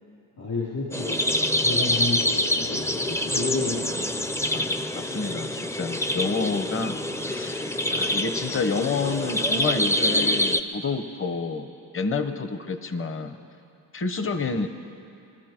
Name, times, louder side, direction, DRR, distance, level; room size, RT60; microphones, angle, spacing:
voice 1, 0.4-1.2 1.6-4.3, left 3 dB, 55° left, -6 dB, 3.7 m, -31 dB
sound 1, 0.9-10.6, left 1 dB, 5° left, 0.6 m, -26 dB
voice 2, 4.5-13.4 13.9-14.7, left 4 dB, 30° left, 9 dB, 1.0 m, -29 dB
23.0 x 12.5 x 4.5 m, 2.8 s
cardioid pair, 85°, 45 cm